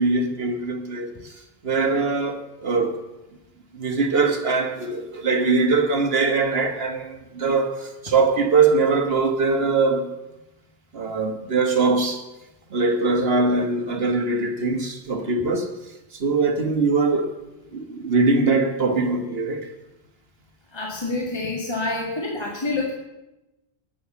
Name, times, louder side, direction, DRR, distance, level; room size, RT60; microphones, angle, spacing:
voice 1, 0.0-1.3 1.6-3.0 3.7-10.1 10.9-12.2 12.7-15.7 16.1-17.3 17.7-19.7, right 3 dB, 70° right, 1.6 m, -22 dB
voice 2, 20.7-22.9, left 2 dB, 25° left, 1.8 m, -27 dB
19.5 x 7.1 x 7.0 m
omnidirectional pair, 1.1 m